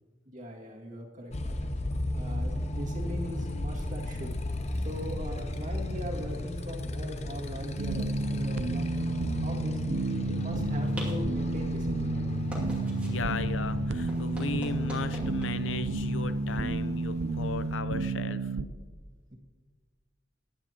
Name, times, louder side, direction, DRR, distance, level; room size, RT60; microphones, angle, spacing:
voice 1, 0.3-1.7 2.1-4.4 4.8-8.9 9.4-12.4, left 1 dB, 40° right, -2 dB, 2.2 m, -40 dB
Motorcycle, 1.3-17.8, left 1 dB, 35° left, 0.7 m, -35 dB
sound 1, 7.8-18.6, right 3 dB, 75° right, 0.6 m, -31 dB
sound 2, 10.2-17.8, equal, 5° right, 2.4 m, -47 dB
voice 2, 13.0-18.5, left 4 dB, 85° left, 12 dB, 0.6 m, -36 dB
20.0 x 9.8 x 2.9 m, 1.5 s
head